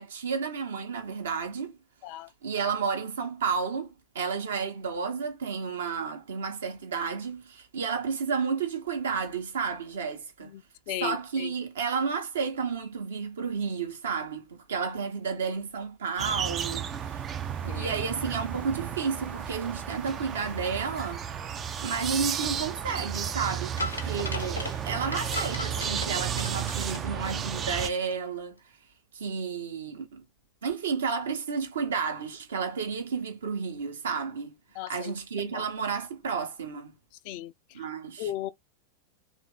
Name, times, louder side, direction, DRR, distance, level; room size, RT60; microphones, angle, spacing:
voice 1, 0.0-1.8 2.4-10.5 11.0-16.9 17.7-21.2 21.8-28.6 29.1-30.2 30.6-34.5 34.9-36.9 37.7-38.3, right 5 dB, 65° right, 0.9 m, -31 dB
voice 2, 10.4-11.5 17.6-17.9 24.2-24.4 34.7-35.1 35.5-35.7 37.2-37.9 38.2-38.5, left 13 dB, 45° left, 0.4 m, -37 dB
sound 1, 16.2-27.9, right 8 dB, 25° right, 0.3 m, -33 dB
sound 2, 16.6-26.2, equal, 90° right, 1.1 m, -50 dB
sound 3, 23.8-27.8 28.1-28.2, left 3 dB, 80° left, 0.7 m, -37 dB
3.1 x 2.5 x 3.6 m
figure-of-eight pair, 90°, 0 cm